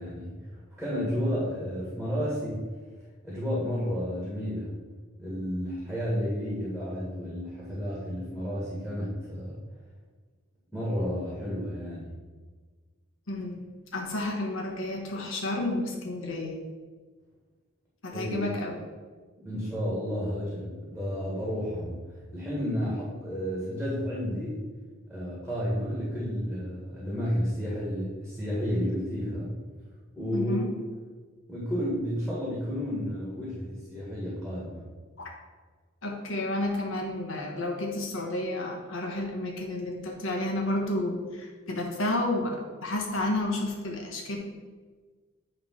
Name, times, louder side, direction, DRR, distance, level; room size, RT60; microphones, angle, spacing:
voice 1, 0.0-2.6 3.2-4.7 5.2-9.6 10.7-12.1 18.1-18.4 19.4-22.0 22.3-24.6 25.1-29.5 30.2-30.7 31.5-34.8, equal, ahead, -8 dB, 1.8 m, -31 dB
voice 2, 13.3-16.6 18.0-18.8 30.3-30.7 35.2-35.3 36.0-44.4, left 1 dB, 65° left, 0 dB, 1.2 m, -31 dB
9.0 x 3.3 x 5.8 m, 1.4 s
head